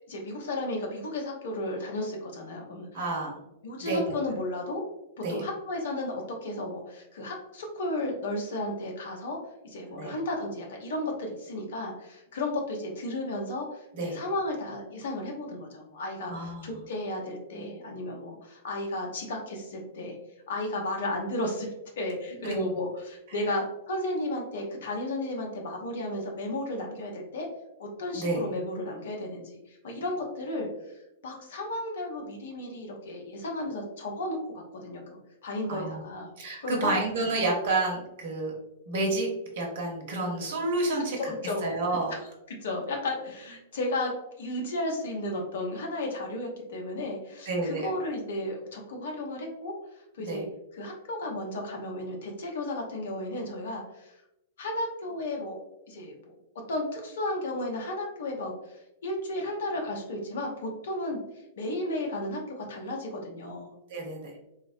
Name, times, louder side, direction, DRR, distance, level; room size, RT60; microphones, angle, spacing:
voice 1, 0.0-3.0 3.6-4.8 5.3-9.4 9.6-20.2 20.5-21.7 22.0-27.5 27.8-30.7 31.2-36.3 36.6-37.0 41.2-41.7 42.1-42.2 42.6-44.1 44.4-49.8 50.1-50.4 50.7-54.1 54.6-55.6 55.9-56.3 56.7-61.2 61.5-63.7, left 1 dB, 65° left, 1 dB, 0.8 m, -33 dB
voice 2, 2.9-3.3 3.8-4.1 5.2-5.4 9.9-10.1 14.0-14.2 16.3-16.8 22.4-22.7 23.3-23.4 28.1-28.5 35.7-36.0 36.4-38.5 38.9-39.3 39.5-41.3 41.6-42.1 47.5-47.9 50.3-50.4 63.9-64.3, right 2 dB, 60° right, -1 dB, 1.0 m, -30 dB
4.0 x 2.1 x 2.6 m, 0.89 s
figure-of-eight pair, 105°, 0 cm